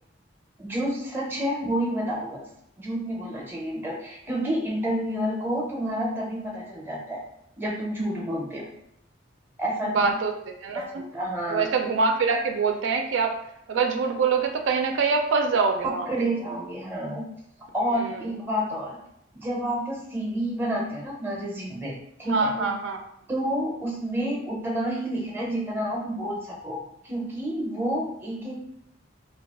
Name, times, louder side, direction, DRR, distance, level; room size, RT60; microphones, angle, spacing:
voice 1, 0.6-2.4 2.8-7.2 7.6-8.7 9.6-10.1 10.7-11.7 15.8-17.2 17.7-19.0 19.3-22.7 23.3-28.6, right 1 dB, 10° right, -2 dB, 0.6 m, -29 dB
voice 2, 9.8-10.3 10.6-11.0 11.5-13.3 13.7-16.1 18.0-18.2 22.3-23.0, right 4 dB, 80° right, 4 dB, 0.4 m, -24 dB
2.3 x 2.3 x 3.5 m, 0.80 s
head